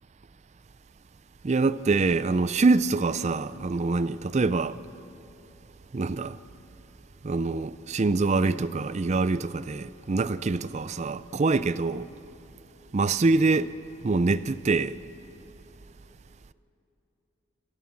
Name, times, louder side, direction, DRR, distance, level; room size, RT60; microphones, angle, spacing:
voice 1, 1.4-4.8 5.9-6.4 7.2-12.1 12.9-13.7 14.0-15.0, right 3 dB, 35° right, 0.4 m, -25 dB
26.0 x 14.5 x 7.1 m
head